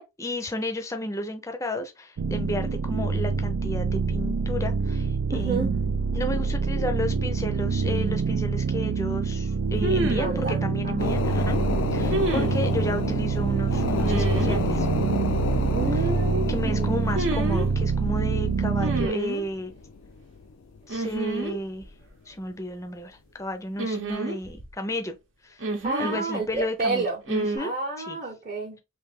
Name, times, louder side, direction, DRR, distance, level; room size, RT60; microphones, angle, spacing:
voice 1, 0.0-11.6 11.9-14.9 16.5-19.7 20.9-21.9 22.3-25.1 25.4-25.7 26.0-28.2, left 1 dB, 15° left, 0.5 m, -32 dB
sound 1, 2.2-19.1, right 5 dB, 85° right, 0.4 m, -26 dB
voice 2, 5.3-5.7 10.2-11.2 15.7-17.0 25.8-27.2 27.6-28.8, right 3 dB, 40° right, 0.9 m, -30 dB
sound 2, 7.9-8.0 9.8-10.4 12.1-12.6 14.0-14.6 17.1-17.7 18.8-19.4 20.9-21.5 21.8-21.9 23.8-24.7 25.6-26.2 27.3-27.6, right 2 dB, 65° right, 0.8 m, -28 dB
sound 3, 11.0-21.0 21.4-21.5, left 4 dB, 75° left, 0.4 m, -31 dB
3.2 x 2.7 x 3.4 m
head